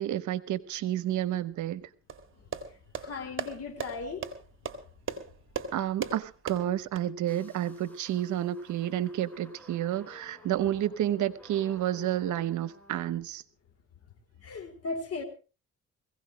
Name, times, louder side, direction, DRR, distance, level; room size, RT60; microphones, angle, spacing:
voice 1, 0.0-1.8 5.7-13.4, right 12 dB, 75° right, 1.0 m, -30 dB
sound 1, 2.1-7.0, right 6 dB, 40° right, 2.3 m, -38 dB
voice 2, 3.0-4.3 14.4-15.2, left 3 dB, 55° left, 3.8 m, -36 dB
sound 2, 7.3-13.0, left 1 dB, 5° left, 6.5 m, -54 dB
21.0 x 16.5 x 3.2 m
cardioid pair, 90°, 30 cm